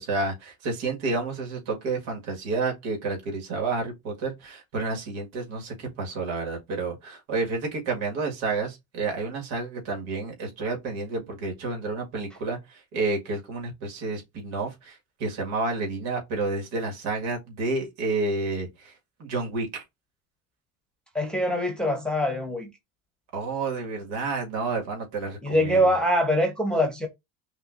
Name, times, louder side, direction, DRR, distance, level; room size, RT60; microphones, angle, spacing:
voice 1, 0.0-18.9 19.2-19.8 23.3-25.9, right 3 dB, 75° right, 1.9 m, -30 dB
voice 2, 21.1-22.7 25.4-27.1, equal, ahead, 0.8 m, -23 dB
5.6 x 2.4 x 2.5 m
cardioid pair, 125°, 48 cm